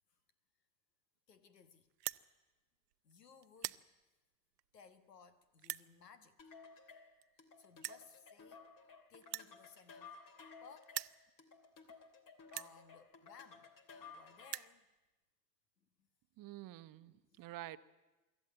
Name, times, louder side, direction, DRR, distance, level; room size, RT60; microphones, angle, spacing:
voice 1, 1.3-1.9 3.0-3.8 4.7-6.5 7.6-8.7 9.1-10.2 10.6-11.0 12.5-14.9 15.8-16.1 17.0-17.5, left 6 dB, 85° left, 1.5 m, -61 dB
sound 1, 1.9-2.2 2.9-3.1 3.4-3.8 4.6-4.7 5.6-5.9 6.9-7.0 7.2-7.3 7.8-8.0 9.2-10.5 10.8-11.2 11.9-12.0 12.5-12.7 13.6-13.7 14.0-14.1 14.3-14.7, right 15 dB, 80° right, 0.6 m, -43 dB
sound 2, 6.4-14.7, left 5 dB, 45° left, 2.8 m, -57 dB
voice 2, 16.4-17.8, right 16 dB, 45° right, 1.0 m, -49 dB
25.0 x 13.5 x 9.1 m
hypercardioid pair, 70°, 47 cm